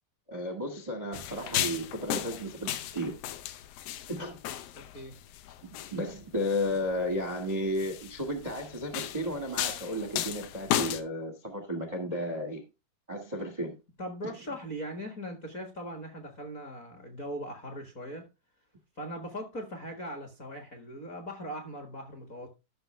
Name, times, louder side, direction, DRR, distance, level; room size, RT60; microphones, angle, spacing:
voice 1, 0.3-3.2 4.1-4.4 5.6-12.6 13.1-13.7, left 1 dB, 40° right, 0.5 m, -33 dB
sound 1, 1.1-11.0, left 12 dB, 85° left, 2.6 m, -35 dB
voice 2, 4.7-5.1 14.0-18.3 19.0-22.5, equal, 40° left, 1.2 m, -40 dB
13.5 x 6.3 x 3.3 m
omnidirectional pair, 4.0 m